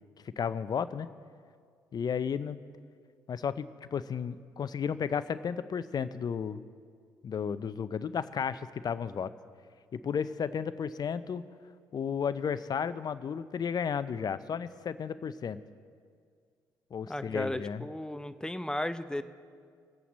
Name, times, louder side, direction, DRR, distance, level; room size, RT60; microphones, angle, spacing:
voice 1, 0.4-1.1 1.9-2.6 3.3-6.6 7.2-9.3 9.9-11.4 11.9-15.6 16.9-17.9, left 7 dB, 45° left, 14 dB, 0.6 m, -33 dB
voice 2, 17.1-19.2, left 1 dB, 10° left, 12 dB, 0.7 m, -35 dB
23.0 x 8.4 x 4.2 m, 2.1 s
hypercardioid pair, 45°, 9 cm